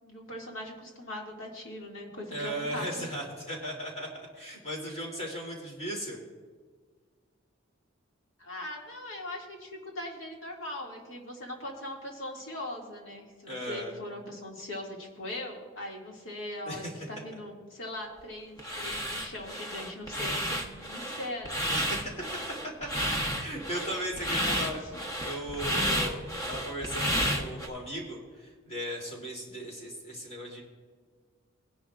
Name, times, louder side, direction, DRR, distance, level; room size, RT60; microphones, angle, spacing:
voice 1, 0.0-3.0 8.4-21.8 24.3-24.7, left 1 dB, 70° left, -1 dB, 2.2 m, -40 dB
voice 2, 2.3-6.2 13.5-13.9 16.7-16.9 21.7-22.2 23.0-23.1 23.4-30.6, equal, 30° left, -2 dB, 2.9 m, -37 dB
sound 1, 18.6-27.7, equal, 15° left, 1.0 m, -31 dB
19.5 x 10.5 x 2.5 m, 1.5 s
head